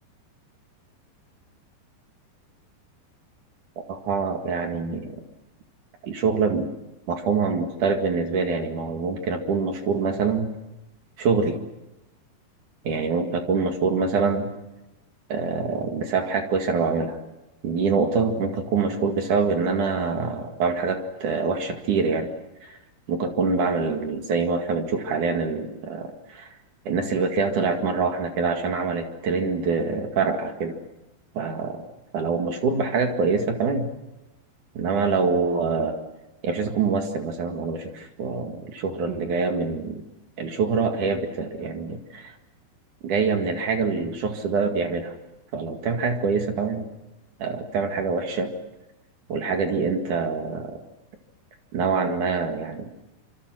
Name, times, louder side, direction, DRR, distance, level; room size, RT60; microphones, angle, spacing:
voice 1, 3.9-5.1 6.0-6.7 7.1-10.5 11.2-11.6 12.8-14.5 15.3-17.2 17.6-22.3 22.6-22.8 23.1-26.5 26.8-30.8 31.3-31.8 32.1-33.9 34.7-36.0 36.4-40.0 40.4-42.3 43.0-45.2 45.5-46.8 47.4-48.5 49.3-50.8 51.7-52.9, right 4 dB, 50° right, 4 dB, 3.0 m, -25 dB
26.0 x 26.0 x 6.3 m, 1.0 s
omnidirectional pair, 5.2 m